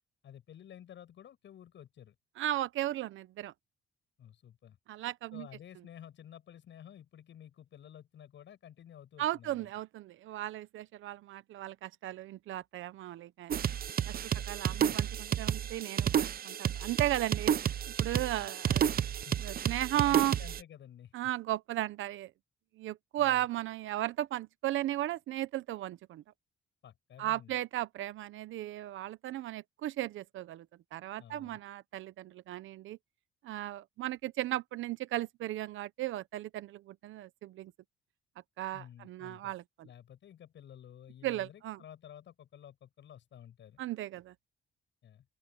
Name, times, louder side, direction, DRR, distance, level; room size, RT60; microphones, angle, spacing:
voice 1, 0.2-2.1 4.2-4.8 5.3-9.7 14.3-15.0 18.4-19.4 19.7-21.1 23.2-23.5 26.8-27.6 31.2-31.6 38.7-39.6 39.8-43.8 45.0-45.2, left 10 dB, 65° left, 8.0 m, -52 dB
voice 2, 2.4-3.5 4.9-5.5 9.2-13.6 14.0-17.5 18.0-18.9 19.4-20.4 21.1-22.3 22.8-26.2 27.2-30.7 30.9-33.0 33.4-37.7 38.6-39.9 41.2-41.8 43.8-44.3, right 14 dB, 80° right, 0.9 m, -35 dB
sound 1, 13.5-20.6, right 9 dB, 50° right, 0.8 m, -31 dB
open air
cardioid pair, 90°, 20 cm